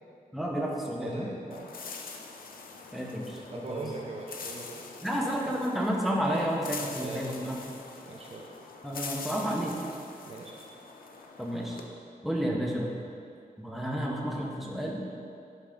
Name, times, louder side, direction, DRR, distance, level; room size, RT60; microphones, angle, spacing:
voice 1, 0.3-1.3 2.9-3.8 5.0-7.5 8.8-9.7 11.4-11.8 12.2-12.9 13.6-15.0, equal, ahead, -3 dB, 1.0 m, -31 dB
voice 2, 1.0-1.7 3.5-5.0 6.2-6.5 6.8-7.3 8.1-8.5 10.3-10.6, right 2 dB, 40° right, -1 dB, 0.6 m, -41 dB
sound 1, 1.5-11.9, left 4 dB, 70° left, 0.6 m, -44 dB
10.5 x 4.0 x 3.8 m, 2.5 s
wide cardioid pair, 115°, 15 cm